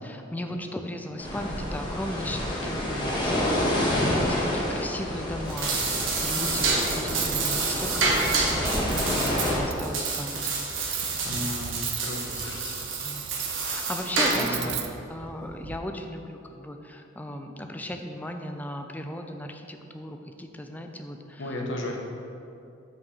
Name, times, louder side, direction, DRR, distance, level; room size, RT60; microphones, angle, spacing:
voice 1, 0.0-5.8 6.2-10.4 10.8-11.0 11.3-11.6 13.0-13.3 13.6-14.7 15.1-21.4, left 1 dB, 10° left, 5 dB, 0.5 m, -36 dB
sound 1, 1.2-9.6, left 1 dB, 25° left, 1.4 m, -29 dB
sound 2, 5.4-14.6, right 3 dB, 80° right, 1.2 m, -28 dB
Cutlery silverware, 7.0-15.8, right 9 dB, 60° right, 0.5 m, -37 dB
voice 2, 11.2-12.7 14.3-14.8 21.4-22.0, left 1 dB, 70° left, 0 dB, 1.0 m, -34 dB
6.2 x 5.3 x 5.7 m, 2.6 s
head